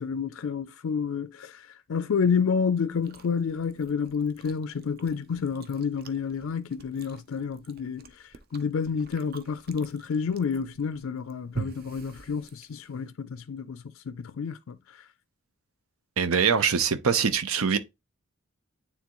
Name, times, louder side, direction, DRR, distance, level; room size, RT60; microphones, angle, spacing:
voice 1, 0.0-8.1 8.5-14.8, left 6 dB, 70° left, 0.4 m, -29 dB
Chewing mastication, 2.9-13.1, right 3 dB, 45° right, 0.6 m, -45 dB
voice 2, 16.2-17.8, right 6 dB, 80° right, 0.7 m, -23 dB
9.4 x 3.6 x 3.0 m
head